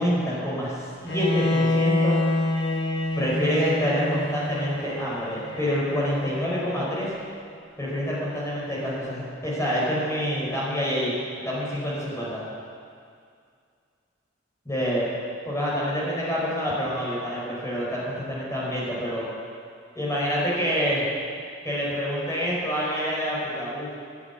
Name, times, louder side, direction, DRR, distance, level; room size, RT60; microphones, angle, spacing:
voice 1, 0.0-2.2 3.2-7.1 7.8-11.1 11.4-12.4 14.7-15.1 15.4-19.3 20.0-21.1 21.6-23.9, equal, 15° left, -7 dB, 5.5 m, -27 dB
Bowed string instrument, 1.1-7.1, left 2 dB, 60° left, 2.0 m, -27 dB
12.5 x 11.5 x 9.8 m, 2.2 s
head